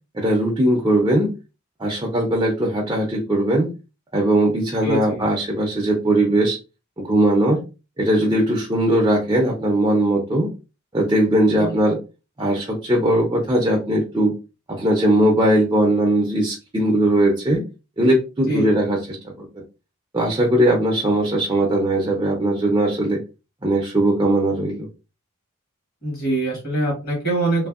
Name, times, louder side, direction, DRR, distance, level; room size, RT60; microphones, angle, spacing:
voice 1, 0.1-1.3 1.8-3.7 4.1-6.6 7.0-7.6 8.0-10.5 10.9-12.0 12.4-14.3 14.7-17.6 18.0-19.6 20.1-23.2 23.6-24.9, right 1 dB, 20° right, 0 dB, 0.4 m, -19 dB
voice 2, 4.8-5.2 11.6-11.8 18.5-18.6 26.0-27.7, right 2 dB, 45° left, -2 dB, 1.3 m, -24 dB
2.6 x 2.6 x 2.4 m, 0.30 s
head